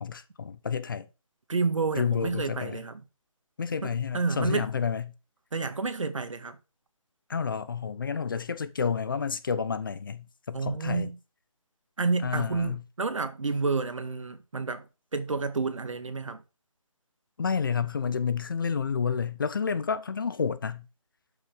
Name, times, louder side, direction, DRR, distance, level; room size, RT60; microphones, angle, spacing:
voice 1, 0.0-1.1 2.0-2.8 3.6-5.0 7.3-11.1 12.2-12.8 17.4-20.9, left 6 dB, 40° left, 0.9 m, -30 dB
voice 2, 1.5-3.0 3.8-4.7 5.5-6.6 10.5-11.2 12.0-14.9 15.1-16.4, right 4 dB, 65° right, 1.9 m, -30 dB
12.5 x 5.8 x 5.2 m
figure-of-eight pair, 165°, 18 cm